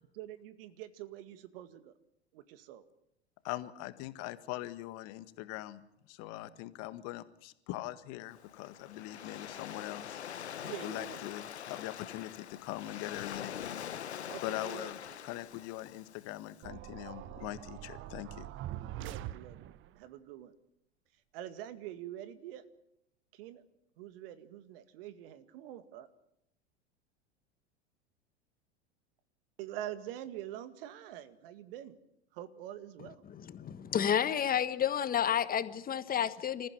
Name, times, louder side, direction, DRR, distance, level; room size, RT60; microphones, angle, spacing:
voice 1, 0.1-1.9 2.3-2.8 10.6-11.2 14.3-15.3 19.0-19.7 20.0-20.5 21.3-22.6 23.3-23.6 24.0-26.1 29.6-32.0 32.3-33.2, right 12 dB, 60° right, 2.1 m, -45 dB
voice 2, 3.4-5.8 6.1-10.2 10.8-13.6 14.4-15.0 15.2-18.5, left 16 dB, 50° left, 1.7 m, -42 dB
Waves surf, 8.3-16.5, left 9 dB, 80° left, 1.1 m, -44 dB
sound 1, 16.6-20.0, right 13 dB, 35° right, 1.0 m, -43 dB
voice 3, 33.2-36.7, left 9 dB, 25° left, 1.4 m, -31 dB
27.0 x 15.0 x 9.2 m
figure-of-eight pair, 85°, 33 cm